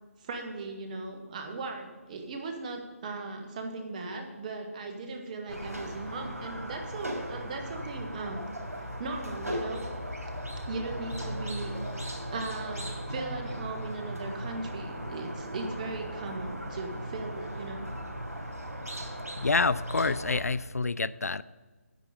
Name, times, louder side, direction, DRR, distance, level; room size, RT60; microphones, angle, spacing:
voice 1, 0.2-8.4 8.7-9.8 10.6-17.9, right 3 dB, 30° right, 4 dB, 1.4 m, -38 dB
Squeak, 5.5-20.4, equal, 90° right, 3.5 m, -37 dB
voice 2, 19.4-21.4, left 3 dB, 80° left, 19 dB, 0.4 m, -27 dB
10.0 x 8.4 x 5.2 m, 1.3 s
figure-of-eight pair, 155°, 8 cm